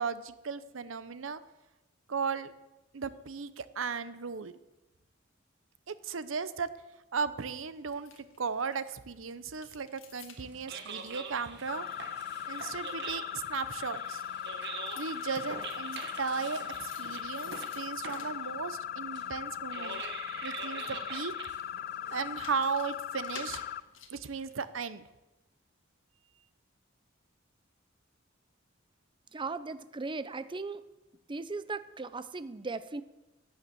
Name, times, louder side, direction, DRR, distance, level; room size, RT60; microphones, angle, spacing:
voice 1, 0.0-1.4 2.1-2.5 2.9-4.5 5.9-6.7 7.1-8.1 8.4-11.9 12.5-14.2 15.0-20.0 20.4-21.3 22.1-23.6 24.1-25.1, right 5 dB, 80° right, 14 dB, 0.8 m, -36 dB
sound 1, 7.6-24.7, left 6 dB, 75° left, 1.8 m, -56 dB
sound 2, 10.4-22.6, right 5 dB, 60° right, 1.6 m, -45 dB
sound 3, 11.7-23.8, left 10 dB, 50° left, 0.3 m, -39 dB
voice 2, 29.3-30.8 31.3-33.0, right 3 dB, 25° right, 13 dB, 0.6 m, -37 dB
12.0 x 9.7 x 7.7 m, 1.0 s
head